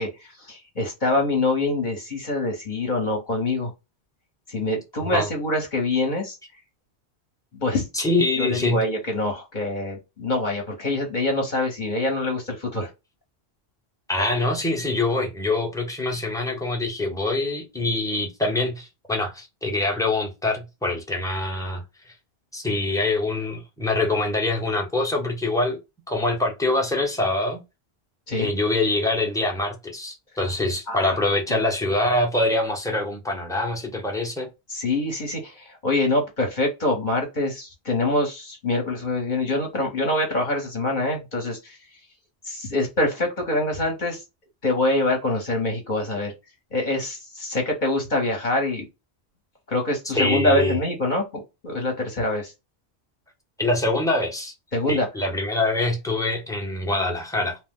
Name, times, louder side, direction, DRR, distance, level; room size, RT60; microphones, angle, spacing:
voice 1, 0.0-3.7 4.5-6.4 7.5-7.8 8.4-12.9 28.3-28.5 30.9-31.2 31.5-31.6 34.7-41.8 42.4-44.2 44.6-46.3 46.7-48.8 49.7-52.5 54.7-55.1, left 2 dB, 50° left, 0.9 m, -25 dB
voice 2, 7.9-8.8 14.1-22.1 22.5-25.8 26.1-27.6 28.4-34.5 50.1-50.8 53.6-54.5 54.9-57.6, left 2 dB, 5° left, 0.6 m, -24 dB
2.8 x 2.0 x 3.5 m
omnidirectional pair, 1.1 m